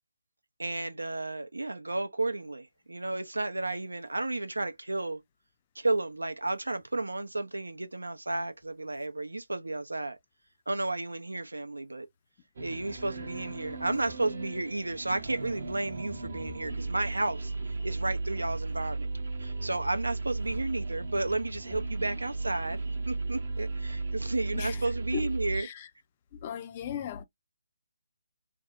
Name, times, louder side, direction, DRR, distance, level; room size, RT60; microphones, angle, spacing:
voice 1, 0.6-5.2 5.8-10.2 10.7-12.1 12.6-19.1 19.4-25.7, right 2 dB, 75° right, 0.6 m, -32 dB
sound 1, 12.6-25.6, right 3 dB, 50° right, 0.9 m, -35 dB
voice 2, 25.1-25.9 26.3-27.2, left 9 dB, 30° left, 0.4 m, -38 dB
3.5 x 2.0 x 2.4 m
figure-of-eight pair, 145°, 0 cm